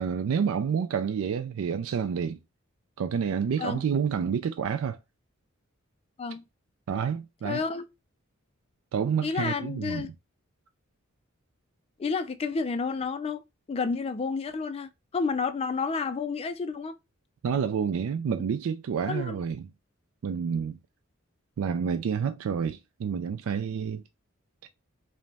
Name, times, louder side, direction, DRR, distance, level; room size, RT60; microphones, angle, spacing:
voice 1, 0.0-2.4 3.0-5.0 6.9-7.6 8.9-10.1 17.4-19.6 20.2-20.8 21.6-24.0 24.6-24.7, right 7 dB, 75° right, 0.3 m, -29 dB
voice 2, 7.4-7.9 9.2-10.1 12.0-13.4 13.7-16.9 19.1-19.4, left 4 dB, 30° left, 0.3 m, -30 dB
5.0 x 2.1 x 3.3 m
head